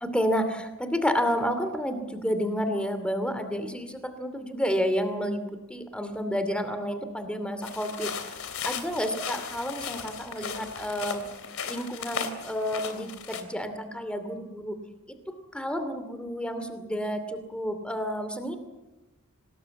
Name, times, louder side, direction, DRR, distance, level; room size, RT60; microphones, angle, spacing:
voice 1, 0.0-8.1 8.6-11.2 11.7-14.8 15.3-18.6, equal, 5° left, 9 dB, 2.6 m, -30 dB
sound 1, 7.6-13.4, left 6 dB, 70° left, 3.2 m, -36 dB
26.0 x 19.5 x 8.3 m, 1.1 s
head